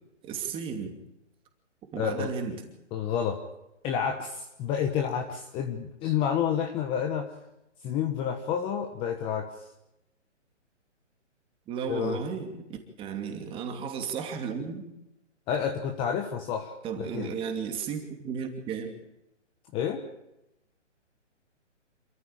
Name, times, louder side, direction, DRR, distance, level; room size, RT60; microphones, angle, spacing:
voice 1, 0.2-0.9 1.9-2.6 11.7-14.8 16.8-18.9, right 6 dB, 15° right, 5 dB, 2.7 m, -34 dB
voice 2, 2.0-2.3 2.9-3.4 3.8-7.4 7.8-9.7 11.9-12.2 15.5-17.3 19.7-20.0, left 8 dB, 15° left, 5 dB, 1.2 m, -29 dB
27.5 x 14.5 x 8.8 m, 0.90 s
hypercardioid pair, 155°, 37 cm